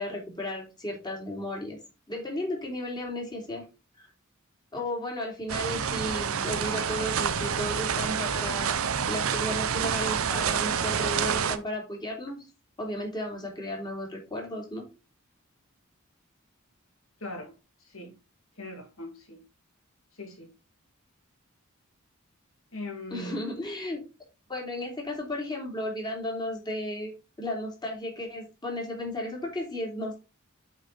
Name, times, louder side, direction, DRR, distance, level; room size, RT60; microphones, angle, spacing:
voice 1, 0.0-1.8 2.1-3.6 4.0-4.1 4.7-8.8 9.1-12.4 12.8-14.8 23.1-24.0 24.5-27.1 27.4-30.2, left 1 dB, 20° left, 3.0 m, -34 dB
sound 1, 5.5-11.6, right 7 dB, 85° right, 0.7 m, -28 dB
voice 2, 17.2-17.5 17.9-18.1 18.6-19.4 20.2-20.5 22.7-23.4, left 1 dB, 75° left, 2.8 m, -39 dB
8.1 x 4.6 x 4.1 m
head